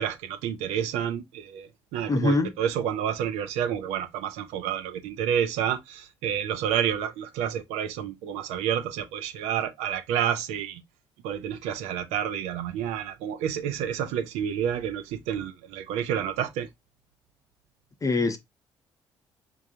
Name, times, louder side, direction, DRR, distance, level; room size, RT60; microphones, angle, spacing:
voice 1, 0.0-10.8 11.2-16.7, right 9 dB, 60° right, 0.6 m, -29 dB
voice 2, 2.1-2.5 18.0-18.4, left 3 dB, 25° left, 0.7 m, -23 dB
5.2 x 2.4 x 2.6 m
figure-of-eight pair, 45°, 13 cm